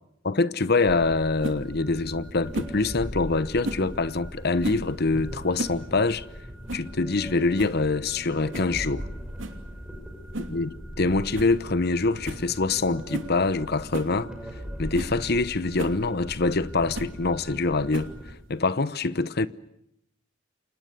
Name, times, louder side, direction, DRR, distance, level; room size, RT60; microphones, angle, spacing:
voice 1, 0.2-6.3 6.7-9.0 10.5-14.3 14.8-18.1 18.5-19.5, left 3 dB, 55° left, 1.0 m, -25 dB
sound 1, 0.9-18.3, equal, 5° right, 6.4 m, -40 dB
sound 2, 1.4-1.6 2.5-2.8 3.6-3.9 4.6-4.9 5.4-5.8 6.1-6.2 6.7-6.9 7.3-7.4 7.6-7.8 8.5-8.8 9.4-9.6 10.3-10.6 10.9-11.0 11.3-11.6 11.8-11.9 12.2-12.5 13.1-13.3 13.9-14.1 14.6-14.7 14.9-15.2 15.8-16.0 16.9-17.2 17.9-18.3, right 1 dB, 80° right, 2.9 m, -34 dB
29.5 x 25.5 x 6.8 m
head